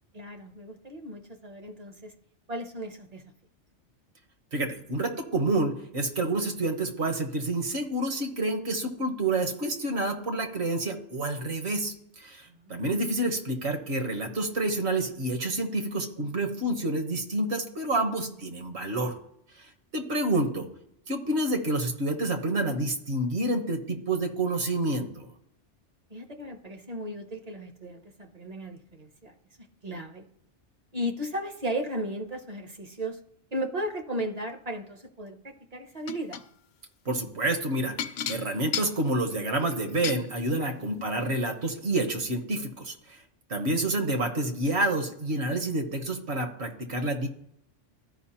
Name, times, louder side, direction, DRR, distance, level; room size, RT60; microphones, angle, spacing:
voice 1, 0.1-2.1 2.5-3.2 12.5-12.7 18.3-18.4 26.1-29.3 29.8-30.3 30.9-33.2 33.5-36.4 40.9-41.1, equal, 40° right, 6 dB, 0.7 m, -35 dB
voice 2, 4.5-19.2 19.6-20.7 21.1-25.3 37.0-43.2 43.5-47.3, right 2 dB, 65° right, 5 dB, 1.3 m, -28 dB
sound 1, 36.1-36.5 38.0-40.2 41.2-41.3 41.8-41.9, left 9 dB, 85° left, 0.9 m, -34 dB
13.5 x 5.1 x 2.9 m, 0.75 s
omnidirectional pair, 1.2 m